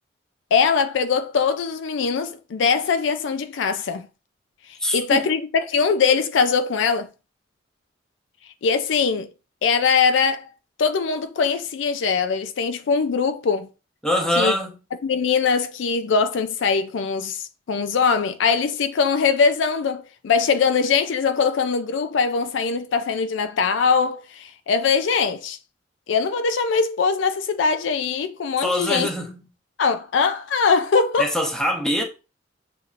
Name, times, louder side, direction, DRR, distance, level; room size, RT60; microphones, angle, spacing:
voice 1, 0.5-4.1 4.9-5.4 5.7-7.1 8.6-9.3 9.6-10.5 10.8-13.7 14.4-14.5 15.0-25.6 26.1-29.1 29.8-31.3, left 5 dB, 75° left, 0.4 m, -21 dB
voice 2, 4.8-5.3 14.0-14.8 28.6-29.5 31.2-32.0, equal, 5° left, 0.9 m, -23 dB
6.8 x 2.8 x 2.5 m
head